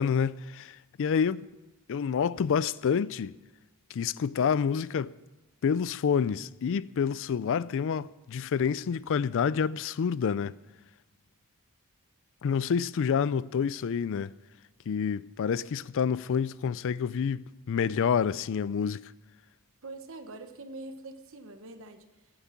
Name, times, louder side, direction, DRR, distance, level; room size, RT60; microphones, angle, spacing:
voice 1, 0.0-1.5 1.9-3.4 3.9-5.1 5.6-10.6 12.4-14.3 14.9-19.1, left 7 dB, 60° left, 0.4 m, -28 dB
voice 2, 19.8-22.3, right 2 dB, 65° right, 1.1 m, -44 dB
12.0 x 9.0 x 8.5 m
head